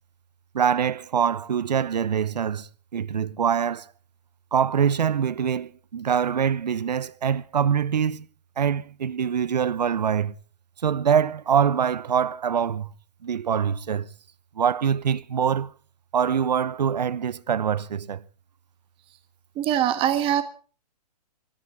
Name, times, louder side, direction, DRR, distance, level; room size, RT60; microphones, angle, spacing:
voice 1, 0.5-3.9 4.5-8.3 8.6-10.3 10.8-12.9 13.2-14.1 14.6-15.7 16.1-18.2, right 8 dB, 85° right, 0.9 m, -24 dB
voice 2, 19.5-20.4, right 11 dB, 25° right, 1.4 m, -22 dB
24.0 x 14.0 x 3.7 m
hypercardioid pair, 135°, 21 cm